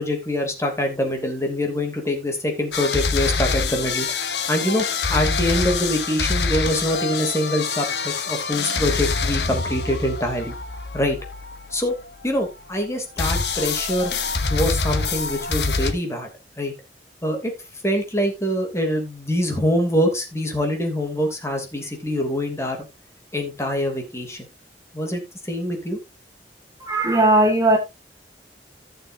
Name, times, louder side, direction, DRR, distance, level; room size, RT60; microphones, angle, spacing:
voice 1, 0.0-4.1 4.5-10.5 10.9-11.2 11.7-11.9 12.2-14.1 14.5-16.3 16.6-16.7 17.2-17.5 17.8-22.8 23.3-24.5 24.9-26.0, equal, 15° left, 3.0 m, -24 dB
sound 1, 2.7-12.7 13.2-15.9, left 4 dB, 75° left, 1.5 m, -25 dB
voice 2, 26.8-27.8, right 1 dB, 20° right, 1.7 m, -17 dB
16.0 x 6.8 x 2.7 m
head